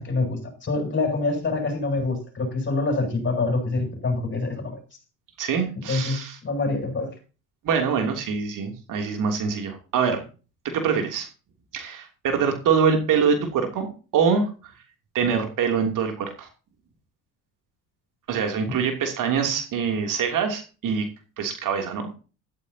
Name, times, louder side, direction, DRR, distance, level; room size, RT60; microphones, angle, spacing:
voice 1, 0.0-4.8 5.9-7.1 18.7-18.8, left 3 dB, 25° left, 3 dB, 7.8 m, -26 dB
voice 2, 5.4-6.4 7.6-10.2 10.6-11.3 11.7-13.9 14.1-14.7 15.1-16.5 18.3-21.1 21.4-22.2, right 6 dB, 50° right, 4 dB, 3.1 m, -24 dB
14.0 x 14.0 x 2.9 m, 0.34 s
figure-of-eight pair, 60°, 41 cm